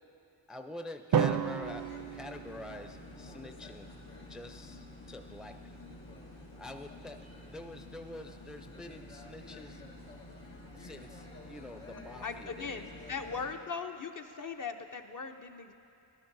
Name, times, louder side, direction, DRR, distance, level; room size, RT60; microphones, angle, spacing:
voice 1, 0.5-3.9 4.3-5.8 6.6-9.8 10.7-12.8, left 1 dB, ahead, 6 dB, 0.5 m, -46 dB
Drum, 1.1-3.2, right 7 dB, 50° right, 0.5 m, -32 dB
sound 1, 1.6-13.5, left 2 dB, 90° left, 1.5 m, -49 dB
voice 2, 12.2-15.7, left 5 dB, 45° left, 5 dB, 0.7 m, -39 dB
14.0 x 12.0 x 2.7 m, 2.9 s
cardioid pair, 50°, 45 cm